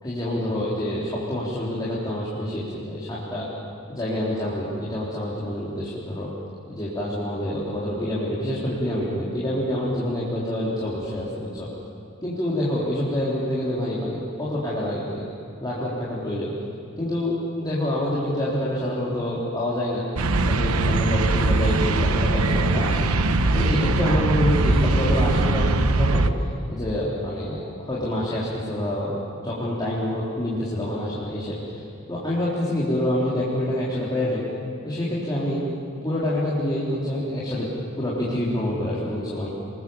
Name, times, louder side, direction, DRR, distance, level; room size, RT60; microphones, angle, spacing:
voice 1, 0.0-3.5 3.9-6.3 6.7-11.7 12.2-15.2 15.6-16.5 17.0-20.0 20.4-23.1 23.5-26.2 26.7-31.6 32.1-34.4 34.8-35.6 36.0-37.7 38.0-39.5, left 1 dB, 20° left, -8 dB, 3.7 m, -27 dB
sound 1, 20.2-26.3, right 2 dB, 80° right, 1.0 m, -21 dB
26.5 x 20.5 x 7.1 m, 2.4 s
head